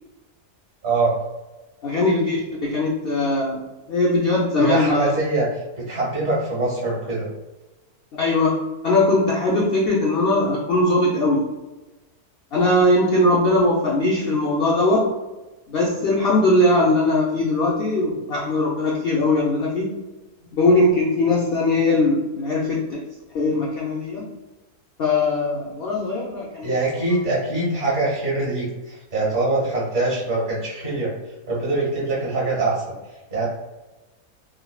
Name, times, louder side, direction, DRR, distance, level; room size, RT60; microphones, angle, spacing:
voice 1, 1.8-3.6 3.9-5.1 8.2-8.5 8.8-11.4 12.5-15.0 15.7-19.9 20.5-23.0 23.3-24.2 25.0-26.7, left 2 dB, 80° left, -4 dB, 0.5 m, -20 dB
voice 2, 4.6-5.4 5.9-7.3 26.6-31.1 31.5-32.7 33.3-33.5, right 2 dB, 50° right, -7 dB, 1.5 m, -23 dB
3.6 x 2.0 x 2.2 m, 1.1 s
omnidirectional pair, 1.6 m